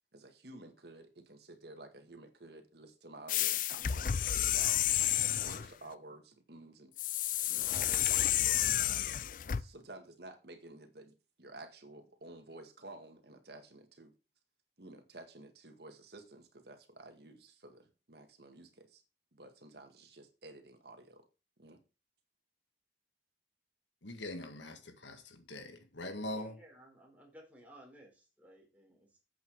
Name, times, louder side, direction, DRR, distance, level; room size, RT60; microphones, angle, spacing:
voice 1, 0.1-7.2 7.5-9.1 9.5-14.1 14.8-19.0 19.3-21.3 21.6-21.8, right 2 dB, 65° right, 1.9 m, -52 dB
sound 1, 3.3-5.7 7.0-9.6, left 11 dB, 45° left, 0.4 m, -31 dB
voice 2, 24.0-26.6, left 1 dB, 90° left, 1.8 m, -42 dB
voice 3, 26.1-29.2, right 1 dB, 10° right, 4.1 m, -58 dB
8.4 x 8.2 x 4.7 m
head